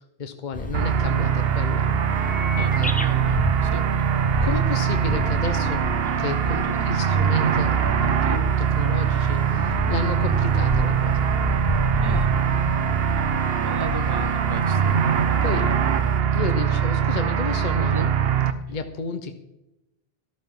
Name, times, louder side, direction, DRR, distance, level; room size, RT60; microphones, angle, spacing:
voice 1, 0.0-1.9 2.6-2.9 4.4-11.3 15.4-15.7 16.3-18.1 18.7-19.3, left 5 dB, 50° left, 8 dB, 1.0 m, -32 dB
sound 1, 0.5-16.2, left 1 dB, 10° left, 0.6 m, -31 dB
sound 2, 0.7-18.5, right 8 dB, 70° right, 1.0 m, -22 dB
voice 2, 2.6-3.9 6.5-6.9 11.9-12.3 13.6-15.0 15.5-16.3 17.8-18.1, right 4 dB, 30° right, 11 dB, 0.5 m, -36 dB
14.0 x 13.0 x 3.7 m, 0.95 s
omnidirectional pair, 1.0 m